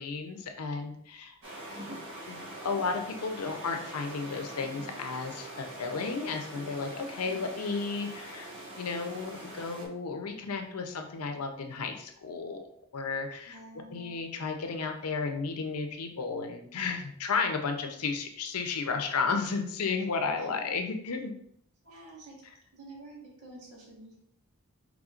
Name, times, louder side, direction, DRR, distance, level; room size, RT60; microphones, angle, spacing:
voice 1, 0.0-1.4 2.3-12.7 12.9-13.6 13.9-21.3, left 4 dB, 85° left, 5 dB, 0.6 m, -33 dB
sound 1, 1.4-9.9, right 1 dB, 55° right, 1.3 m, -43 dB
voice 2, 13.4-14.3 20.4-20.5 21.8-22.4 22.7-24.2, right 2 dB, 85° right, -3 dB, 1.3 m, -49 dB
4.9 x 3.4 x 2.4 m, 0.68 s
head